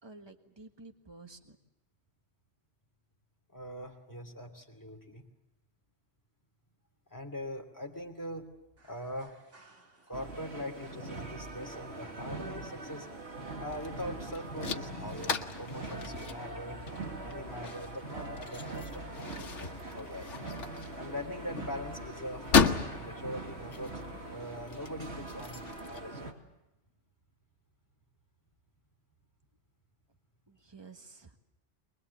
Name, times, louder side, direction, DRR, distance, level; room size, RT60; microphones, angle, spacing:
voice 1, 0.0-1.6 30.5-31.4, right 3 dB, 20° right, 5 dB, 1.6 m, -52 dB
voice 2, 3.5-5.2 7.1-8.5 8.8-9.4 10.1-13.1 13.6-16.8 17.2-20.5 20.9-24.0 24.3-26.4, equal, 15° left, 3 dB, 2.8 m, -42 dB
sound 1, 8.8-10.3 10.8-16.1 16.6-16.7 17.5-17.6, equal, 90° right, 2.7 m, -52 dB
sound 2, 10.1-26.3, right 2 dB, 65° right, 2.6 m, -43 dB
sound 3, 13.7-26.0, left 5 dB, 85° left, 1.6 m, -35 dB
24.0 x 22.0 x 8.4 m, 0.92 s
omnidirectional pair, 1.2 m